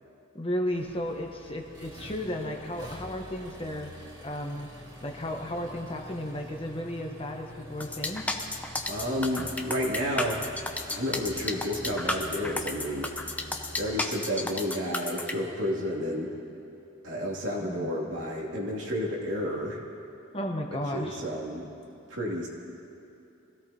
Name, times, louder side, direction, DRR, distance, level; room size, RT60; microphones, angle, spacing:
voice 1, 0.3-3.9 4.2-4.7 5.0-8.2 17.6-17.9 20.3-21.2, left 1 dB, 25° left, 2 dB, 1.1 m, -34 dB
Accelerating revving vroom, 0.7-14.0, equal, 20° right, 2.7 m, -46 dB
sound 1, 7.8-15.3, left 2 dB, 5° left, 0.7 m, -32 dB
voice 2, 8.8-10.4 10.9-13.1 13.8-16.3 17.0-19.8 20.7-21.7 22.1-22.5, equal, 65° right, -3 dB, 2.7 m, -31 dB
24.0 x 16.5 x 2.9 m, 2.9 s
head